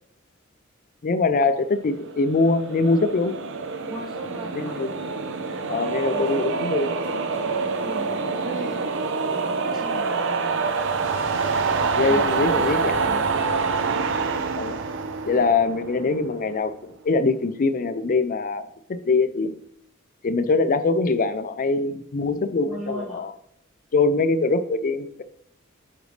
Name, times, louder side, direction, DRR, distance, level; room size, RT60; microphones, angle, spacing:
voice 1, 1.0-3.4 4.6-4.9 5.7-7.0 12.0-13.1 14.6-14.8 15.2-19.5 20.2-23.3 23.9-25.2, left 3 dB, 40° left, 11 dB, 0.4 m, -23 dB
sound 1, 2.0-16.3, right 4 dB, 60° right, 0.7 m, -26 dB
voice 2, 3.8-4.8 5.7-6.3 7.8-10.8 12.0-14.3 22.6-23.2, equal, ahead, -11 dB, 2.8 m, -38 dB
9.9 x 5.2 x 3.2 m, 0.71 s
head